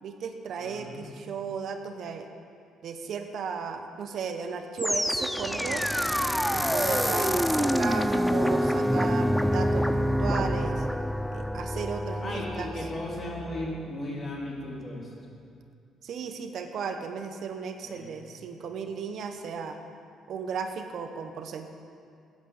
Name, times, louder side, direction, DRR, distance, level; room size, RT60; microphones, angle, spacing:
voice 1, 0.0-2.3 2.8-5.8 6.5-10.9 11.3-12.7 16.0-19.8 20.3-21.7, right 6 dB, 60° right, 6 dB, 0.8 m, -35 dB
voice 2, 0.6-1.1 6.5-6.7 12.2-15.1 17.8-18.3, left 1 dB, 35° left, -2 dB, 2.7 m, -37 dB
sound 1, 4.8-13.9, equal, ahead, 0.3 m, -27 dB
11.0 x 8.3 x 6.6 m, 2.4 s
cardioid pair, 100°, 0 cm